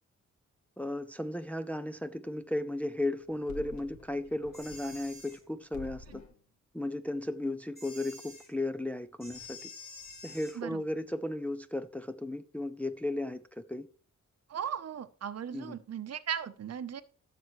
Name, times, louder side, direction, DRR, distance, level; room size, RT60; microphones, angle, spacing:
voice 1, 0.8-6.2 6.7-9.7 10.2-13.9 15.5-15.8, left 1 dB, 5° left, 0.4 m, -35 dB
sound 1, 3.2-5.4 5.7-6.4, left 3 dB, 70° left, 1.7 m, -49 dB
sound 2, 4.5-5.4 7.8-8.5 9.2-10.6, left 2 dB, 30° left, 3.6 m, -48 dB
voice 2, 14.5-17.0, right 8 dB, 60° right, 0.8 m, -37 dB
15.5 x 6.9 x 3.1 m
wide cardioid pair, 130°, 29 cm